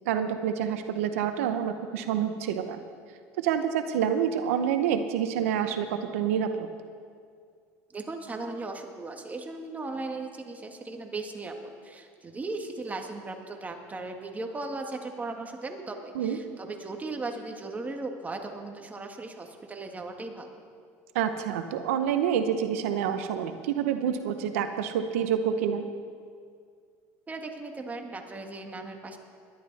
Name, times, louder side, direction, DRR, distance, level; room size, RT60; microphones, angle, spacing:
voice 1, 0.1-2.8 3.4-6.7 16.1-16.4 21.1-25.8, right 8 dB, 90° right, 8 dB, 0.7 m, -27 dB
voice 2, 7.9-20.6 27.3-29.2, right 3 dB, 20° right, 3 dB, 1.8 m, -37 dB
20.5 x 11.5 x 4.1 m, 2.2 s
supercardioid pair, 95°, 7 cm